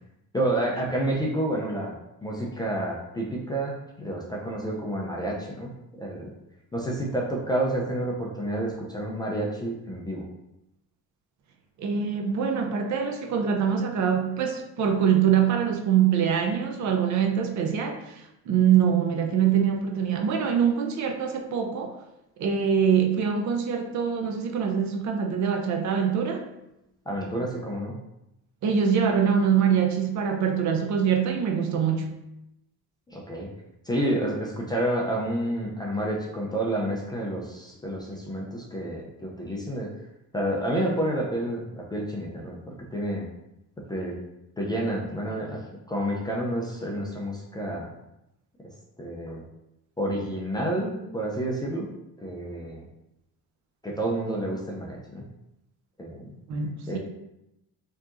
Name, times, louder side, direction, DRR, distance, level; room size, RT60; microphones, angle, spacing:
voice 1, 0.3-1.9 2.2-6.3 6.7-10.3 27.1-28.0 33.1-33.5 33.9-39.9 40.3-43.3 43.9-44.1 44.6-47.9 49.0-49.4 50.0-51.9 52.2-52.9 53.8-55.2 56.0-56.3 56.9-57.0, right 1 dB, 10° left, -2 dB, 0.4 m, -29 dB
voice 2, 11.8-22.0 22.4-26.4 28.6-32.2 56.5-57.0, right 7 dB, 50° right, 4 dB, 0.5 m, -24 dB
4.6 x 2.8 x 2.5 m, 0.87 s
cardioid pair, 160°, 36 cm